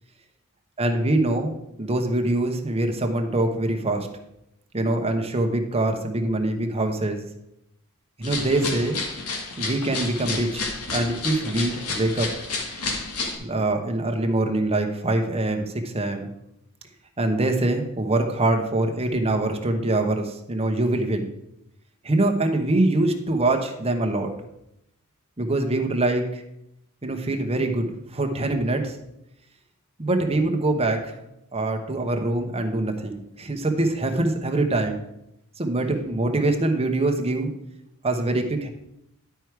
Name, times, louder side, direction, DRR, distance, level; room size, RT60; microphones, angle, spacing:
voice 1, 0.8-1.5 1.8-4.1 4.7-7.3 8.2-9.0 9.6-10.6 10.9-12.3 13.4-16.3 17.2-21.3 22.0-24.3 25.4-26.4 27.0-29.0 30.0-35.1 35.6-37.5 38.0-38.7, right 2 dB, 30° right, 4 dB, 0.9 m, -24 dB
sound 1, 8.2-13.4, left 3 dB, 80° left, 1.6 m, -30 dB
11.0 x 4.6 x 4.7 m, 0.83 s
head